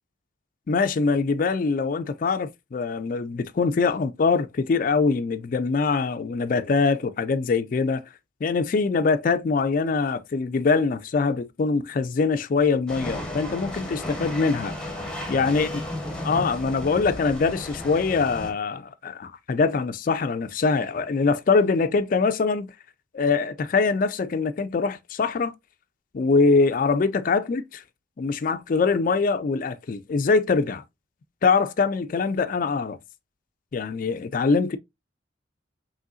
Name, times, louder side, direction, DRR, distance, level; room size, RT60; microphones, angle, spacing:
voice 1, 0.7-8.0 8.4-14.8 15.3-15.7 16.2-22.7 23.1-25.5 26.1-27.6 28.2-30.8 31.4-33.0 33.7-34.8, left 4 dB, 45° left, 0.3 m, -23 dB
sound 1, 12.9-18.5, left 1 dB, 5° left, 0.8 m, -34 dB
5.4 x 3.1 x 2.4 m
head